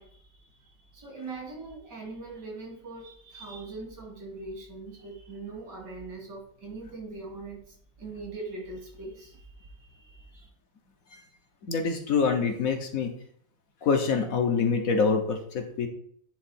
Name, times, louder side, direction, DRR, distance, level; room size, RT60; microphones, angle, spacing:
voice 1, 0.0-10.5, right 3 dB, 85° right, -1 dB, 3.2 m, -42 dB
voice 2, 11.7-13.1 13.8-15.9, left 5 dB, 60° left, 4 dB, 1.3 m, -25 dB
9.9 x 3.9 x 4.3 m, 0.63 s
omnidirectional pair, 1.8 m